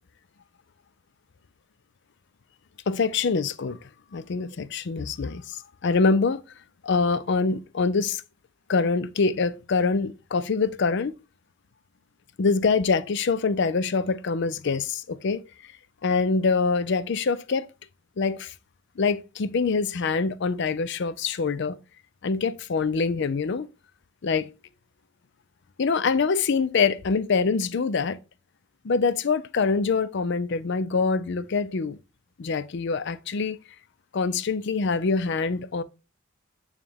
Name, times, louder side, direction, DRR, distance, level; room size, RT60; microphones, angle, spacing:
voice 1, 2.9-3.8 4.1-6.4 6.8-8.2 8.7-11.2 12.4-15.4 16.0-17.7 18.2-18.5 19.0-21.8 22.2-23.7 24.2-24.5 25.8-28.2 28.8-32.0 32.4-33.6 34.1-35.8, left 4 dB, 55° left, 0.5 m, -25 dB
8.9 x 3.2 x 3.4 m
head